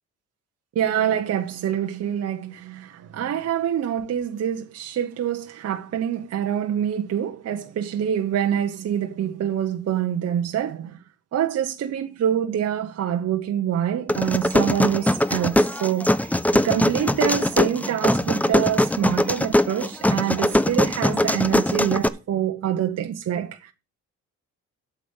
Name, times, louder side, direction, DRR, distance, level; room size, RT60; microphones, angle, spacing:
voice 1, 0.7-11.0 11.3-16.2 16.5-23.7, right 9 dB, 55° right, 1.0 m, -26 dB
sound 1, 14.1-22.1, left 1 dB, 5° left, 0.7 m, -21 dB
8.4 x 6.9 x 7.1 m
cardioid pair, 90°, 30 cm